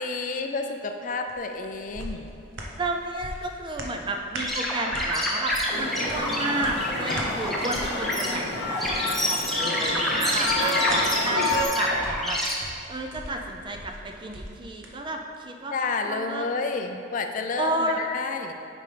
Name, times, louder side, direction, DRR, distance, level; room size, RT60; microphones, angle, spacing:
voice 1, 0.0-2.3 15.7-18.5, left 3 dB, 40° left, 5 dB, 0.4 m, -30 dB
sound 1, 1.3-14.9 15.3-15.4, right 1 dB, 80° right, 0.8 m, -41 dB
voice 2, 2.8-12.4 12.9-15.7 16.0-16.4 17.6-18.1, right 2 dB, 25° right, 3 dB, 0.4 m, -31 dB
sound 2, 4.4-12.5, equal, ahead, 0.8 m, -28 dB
sound 3, 5.7-11.6, left 2 dB, 60° left, 0.8 m, -30 dB
8.8 x 5.2 x 3.4 m, 2.7 s
head